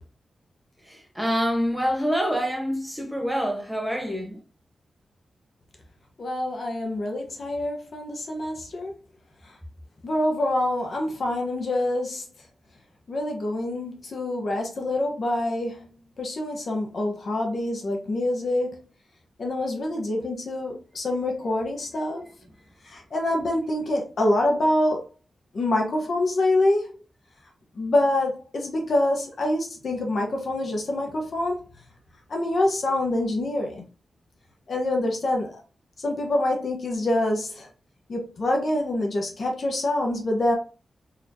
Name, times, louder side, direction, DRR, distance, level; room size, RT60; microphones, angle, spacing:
voice 1, 1.2-4.4, equal, 5° right, 0.9 m, -26 dB
voice 2, 6.2-8.9 10.0-12.2 13.1-15.9 16.2-18.8 19.4-22.2 22.9-25.1 25.5-26.9 27.7-31.6 32.3-33.9 34.7-35.6 36.0-37.7 38.1-40.6, left 1 dB, 50° left, 0.9 m, -26 dB
4.1 x 3.1 x 2.6 m
wide cardioid pair, 165°, 0 cm